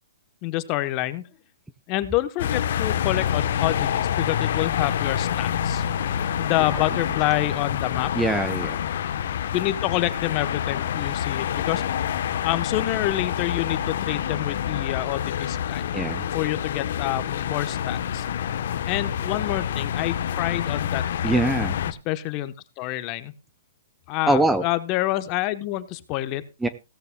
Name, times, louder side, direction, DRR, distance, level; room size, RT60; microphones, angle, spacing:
voice 1, 0.4-1.2 1.9-5.9 6.4-8.1 9.5-12.0 12.4-15.9 16.3-18.3 18.9-21.3 21.8-23.3 24.1-26.4, left 16 dB, 30° left, 12 dB, 0.9 m, -27 dB
sound 1, 2.4-21.9, left 9 dB, 60° left, 0.9 m, -27 dB
voice 2, 8.1-8.8 15.9-16.3 21.2-21.8 24.3-24.6 26.6-26.7, right 2 dB, 5° right, 11 dB, 0.6 m, -23 dB
16.0 x 13.5 x 2.2 m, 0.27 s
hypercardioid pair, 155°, 0 cm